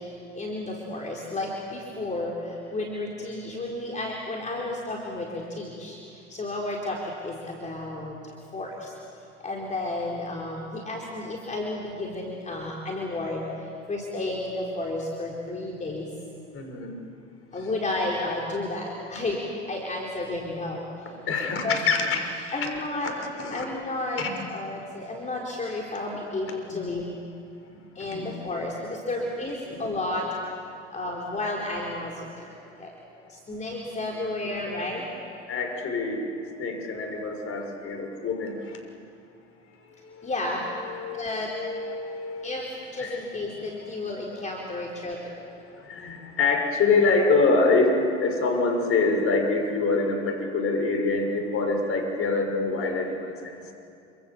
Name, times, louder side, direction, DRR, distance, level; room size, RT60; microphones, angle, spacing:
voice 1, 0.0-8.2 8.5-8.9 9.4-16.1 17.5-20.8 21.4-21.8 22.5-23.2 23.5-27.1 27.9-30.3 30.9-32.5 32.8-32.9 33.3-35.0 40.2-40.7 41.1-41.5 42.4-45.4, left 2 dB, 20° left, -2 dB, 4.5 m, -32 dB
voice 2, 16.5-17.0 17.5-17.7 21.3-22.7 23.4-23.6 24.2-24.3 26.7-26.9 27.7-28.4 29.6-29.9 35.5-36.3 36.6-38.8 40.0-40.3 40.8-42.6 43.0-43.2 45.8-53.7, left 3 dB, 40° left, 4 dB, 6.3 m, -26 dB
28.0 x 27.5 x 7.4 m, 2.5 s
figure-of-eight pair, 75°, 36 cm